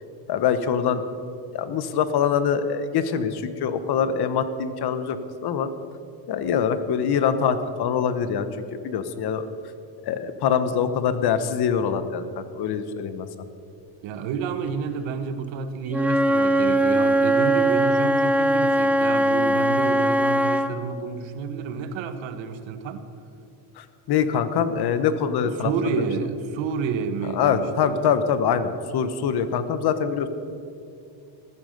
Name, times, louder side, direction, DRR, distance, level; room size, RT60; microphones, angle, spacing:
voice 1, 0.3-1.0 1.5-5.7 6.3-8.5 8.8-9.5 10.1-13.3 23.8-25.7 26.0-26.1 27.2-30.3, left 7 dB, 55° left, 11 dB, 1.2 m, -24 dB
voice 2, 14.0-23.0 25.4-28.0, right 6 dB, 70° right, 9 dB, 1.5 m, -29 dB
Wind instrument woodwind instrument, 15.9-20.7, right 1 dB, 5° right, 0.4 m, -20 dB
15.0 x 13.0 x 6.7 m, 2.6 s
cardioid pair, 145°, 47 cm